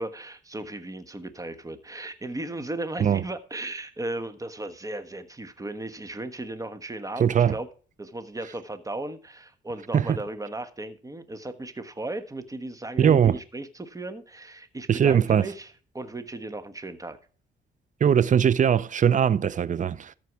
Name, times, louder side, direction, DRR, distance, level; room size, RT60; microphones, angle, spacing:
voice 1, 0.0-7.7 8.0-17.2, right 2 dB, 15° right, 1.3 m, -36 dB
voice 2, 7.2-7.6 9.9-10.2 13.0-13.4 14.9-15.5 18.0-20.1, right 8 dB, 40° right, 0.6 m, -20 dB
14.0 x 4.7 x 4.7 m
cardioid pair, 90°, 20 cm